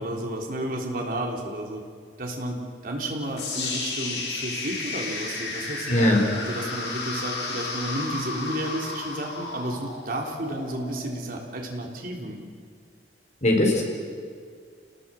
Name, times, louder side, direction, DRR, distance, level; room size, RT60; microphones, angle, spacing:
voice 1, 0.0-1.8 2.2-12.4, right 1 dB, 50° right, 0 dB, 3.4 m, -32 dB
sound 1, 3.4-11.4, left 3 dB, 75° left, 6.2 m, -33 dB
voice 2, 5.9-6.2 13.4-13.8, left 1 dB, 40° left, 2 dB, 4.4 m, -19 dB
28.0 x 18.5 x 7.6 m, 2.1 s
head